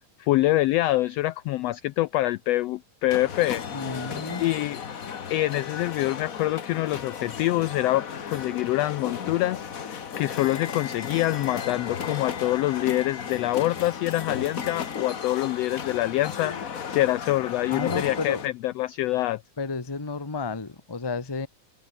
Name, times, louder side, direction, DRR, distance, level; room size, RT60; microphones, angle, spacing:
voice 1, 0.2-3.6 4.4-4.8 5.3-16.5 16.9-19.4, left 16 dB, 85° left, 1.4 m, -25 dB
sound 1, 3.1-18.5, left 7 dB, 50° left, 1.0 m, -35 dB
voice 2, 3.7-4.4 17.7-18.4 19.6-21.5, left 4 dB, 20° left, 0.6 m, -32 dB
open air
omnidirectional pair, 3.5 m